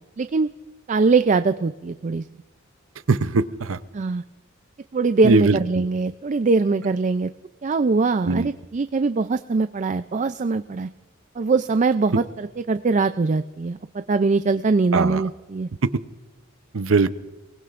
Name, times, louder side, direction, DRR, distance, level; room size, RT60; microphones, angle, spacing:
voice 1, 0.2-0.5 0.9-2.3 3.9-4.2 4.9-7.3 7.6-10.9 11.4-15.7, right 4 dB, 35° right, 11 dB, 0.4 m, -22 dB
voice 2, 3.1-3.8 5.2-5.9 8.2-8.5 14.9-15.3 15.8-15.9 16.7-17.1, right 3 dB, 70° right, 13 dB, 0.7 m, -20 dB
29.0 x 19.5 x 2.5 m, 1.3 s
head